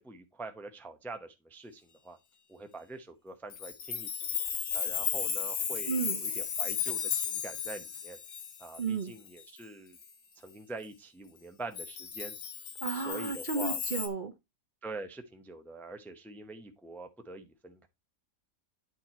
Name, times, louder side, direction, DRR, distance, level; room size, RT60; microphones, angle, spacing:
voice 1, 0.0-2.2 2.5-4.1 4.7-8.2 8.6-10.0 10.4-12.4 12.9-13.8 14.8-17.9, right 2 dB, ahead, 0.6 m, -44 dB
Chime, 3.5-9.6 10.0-10.1 11.8-14.1, left 7 dB, 80° left, 1.5 m, -34 dB
voice 2, 5.9-6.2 8.8-9.1 12.8-14.3, right 5 dB, 45° right, 0.7 m, -33 dB
8.8 x 4.5 x 4.3 m
omnidirectional pair, 1.5 m